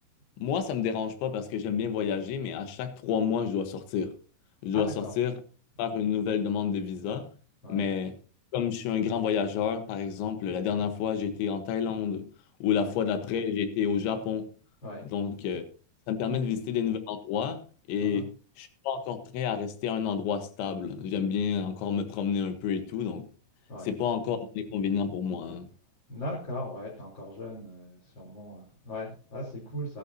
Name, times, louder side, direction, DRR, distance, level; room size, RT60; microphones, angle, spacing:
voice 1, 0.4-4.1 4.6-5.4 5.8-7.3 7.7-8.2 8.5-12.3 12.6-14.5 15.1-15.7 16.1-17.6 17.9-23.3 23.8-25.7, left 7 dB, 75° left, 8 dB, 3.7 m, -29 dB
voice 2, 4.7-5.1 7.6-7.8 12.7-12.9 14.8-15.0 16.2-16.6 18.0-18.2 23.7-23.9 26.1-30.0, left 1 dB, 25° left, -6 dB, 4.3 m, -39 dB
19.0 x 11.0 x 2.9 m, 0.40 s
omnidirectional pair, 5.5 m